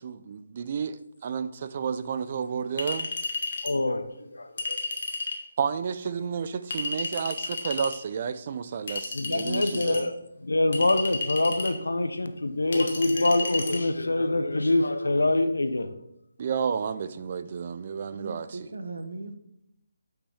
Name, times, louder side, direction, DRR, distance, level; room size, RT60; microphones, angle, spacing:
voice 1, 0.0-3.1 5.6-10.1 16.4-18.7, right 6 dB, 40° right, 0.5 m, -31 dB
Chink clink, 2.8-3.8 4.6-5.4 6.7-8.0 8.9-10.0 10.7-11.8 12.7-13.8, left 3 dB, 55° left, 1.4 m, -32 dB
voice 2, 3.6-4.8 9.1-15.9, left 2 dB, 80° left, 0.8 m, -25 dB
voice 3, 18.1-19.4, right 3 dB, 70° right, 1.0 m, -38 dB
8.1 x 5.8 x 3.4 m
figure-of-eight pair, 150°, 0 cm